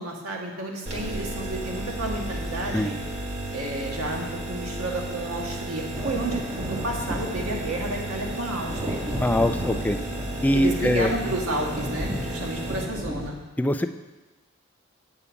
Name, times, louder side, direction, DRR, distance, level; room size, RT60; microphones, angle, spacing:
voice 1, 0.0-3.0 3.5-9.0 10.5-13.4, right 1 dB, 90° right, 0 dB, 1.6 m, -31 dB
sound 1, 0.9-12.9, right 1 dB, 30° right, 1.4 m, -33 dB
sound 2, 5.9-13.3, equal, 15° right, 0.8 m, -34 dB
voice 2, 9.2-10.0 10.4-11.1 13.6-13.9, left 1 dB, 10° left, 8 dB, 0.3 m, -22 dB
8.2 x 5.0 x 7.0 m, 1.2 s
head